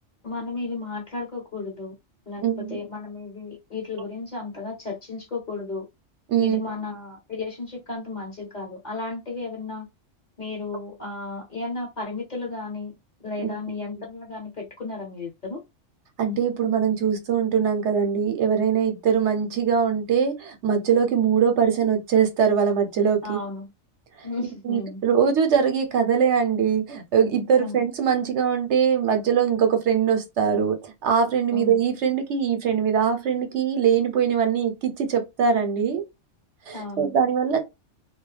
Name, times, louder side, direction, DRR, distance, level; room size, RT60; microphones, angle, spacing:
voice 1, 0.2-2.0 2.3-5.9 6.4-9.9 10.4-12.9 13.2-15.6 23.2-23.7 24.2-25.0 27.6-27.8 31.5-31.8 36.7-37.1, left 3 dB, 40° left, 0.9 m, -33 dB
voice 2, 2.4-2.8 6.3-6.6 16.2-23.4 24.2-24.3 24.6-36.0 36.7-37.6, right 7 dB, 70° right, 0.9 m, -22 dB
2.4 x 2.2 x 3.1 m
omnidirectional pair, 1.3 m